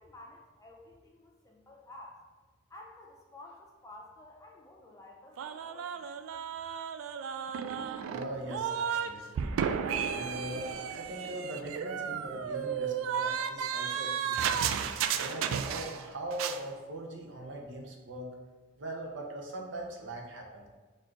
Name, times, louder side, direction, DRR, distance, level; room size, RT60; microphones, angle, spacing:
voice 1, 0.0-2.2 2.7-6.1, left 1 dB, 15° left, 0 dB, 0.5 m, -52 dB
sound 1, 5.4-9.1 9.4-16.1 16.3-16.6, right 7 dB, 85° right, 0.3 m, -33 dB
voice 2, 8.0-9.5 10.0-14.6 15.1-18.3 18.8-20.7, right 1 dB, 65° right, 1 dB, 0.7 m, -41 dB
4.2 x 2.5 x 4.5 m, 1.3 s
head